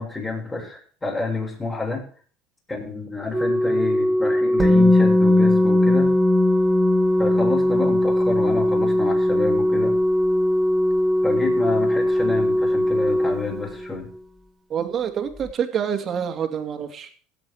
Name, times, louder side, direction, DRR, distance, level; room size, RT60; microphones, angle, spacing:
voice 1, 0.0-2.1 2.7-6.1 7.2-10.0 11.2-14.1, left 3 dB, 15° left, -1 dB, 6.8 m, -29 dB
Organ, 3.3-14.2 15.3-15.5, equal, 5° right, 1.3 m, -21 dB
Musical instrument, 4.6-12.5 12.8-12.9, left 2 dB, 20° right, 2.9 m, -23 dB
voice 2, 14.7-17.1, right 8 dB, 40° right, 6 dB, 2.6 m, -27 dB
16.5 x 8.0 x 4.8 m, 0.43 s
supercardioid pair, 100°, 0 cm